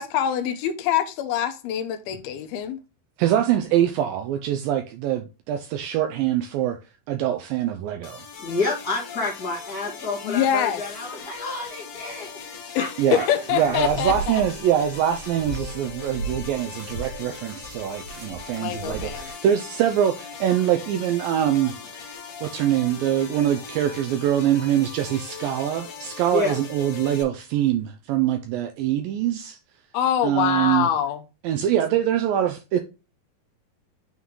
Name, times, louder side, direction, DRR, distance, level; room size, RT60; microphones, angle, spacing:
voice 1, 0.0-2.8 10.2-10.8 12.8-14.4 18.5-19.3 29.9-31.2, left 9 dB, 85° left, 2.5 m, -24 dB
voice 2, 3.2-6.8 7.1-8.2 13.0-13.3 13.5-22.2 22.4-29.6 30.2-30.9 31.4-32.8, right 10 dB, 80° right, 2.1 m, -24 dB
sound 1, 8.0-27.2, left 6 dB, 55° left, 2.3 m, -40 dB
voice 3, 8.4-12.3 12.8-13.9 21.5-21.7 26.3-26.6, left 3 dB, 30° left, 1.9 m, -30 dB
sound 2, 13.6-19.3, right 2 dB, 60° right, 2.2 m, -37 dB
9.3 x 3.7 x 3.1 m
omnidirectional pair, 4.6 m